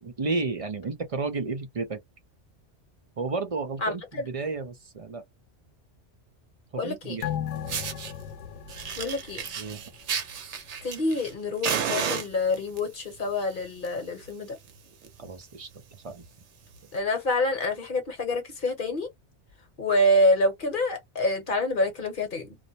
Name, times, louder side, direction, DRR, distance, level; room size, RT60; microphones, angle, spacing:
voice 1, 0.0-2.0 3.2-5.2 6.7-7.4 9.6-9.8 15.2-15.7 16.0-16.2, right 3 dB, 40° right, 0.5 m, -32 dB
voice 2, 3.8-4.3 6.8-7.2 9.0-9.5 10.8-14.6 16.9-19.1 19.8-22.6, left 1 dB, 50° left, 1.1 m, -27 dB
sound 1, 7.2-10.1 10.5-10.6, left 10 dB, 80° left, 0.9 m, -36 dB
Fire, 7.2-7.3 7.7-8.1 8.7-11.3 11.6-12.8 13.6-13.9 14.2-14.3 14.7-14.8 15.0-15.3 15.8-15.9 16.8-16.9, right 7 dB, 80° right, 1.0 m, -32 dB
2.5 x 2.1 x 2.7 m
omnidirectional pair, 1.2 m